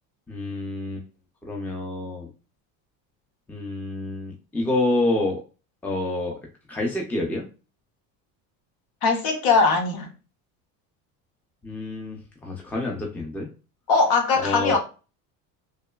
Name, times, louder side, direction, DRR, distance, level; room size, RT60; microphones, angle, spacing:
voice 1, 0.3-1.0 1.4-2.3 3.5-5.4 5.8-6.4 6.7-7.4 11.6-12.2 12.4-13.5 14.4-14.8, left 2 dB, 5° left, 0.5 m, -27 dB
voice 2, 9.0-10.1 13.9-14.8, left 4 dB, 60° left, 1.0 m, -20 dB
3.0 x 2.1 x 2.3 m
cardioid pair, 120°, 41 cm